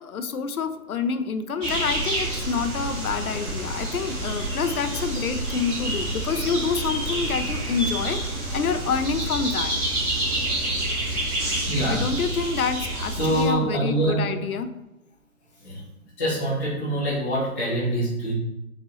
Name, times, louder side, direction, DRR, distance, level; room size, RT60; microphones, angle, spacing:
voice 1, 0.0-8.2 8.5-9.7 11.9-14.7, left 5 dB, 70° left, 9 dB, 0.6 m, -27 dB
sound 1, 1.6-13.4, right 1 dB, 15° right, 1.6 m, -28 dB
voice 2, 11.7-12.0 13.1-14.2 15.6-15.8 16.2-18.3, right 1 dB, 10° left, -14 dB, 0.5 m, -25 dB
7.1 x 2.6 x 2.8 m, 0.95 s
figure-of-eight pair, 140°, 45 cm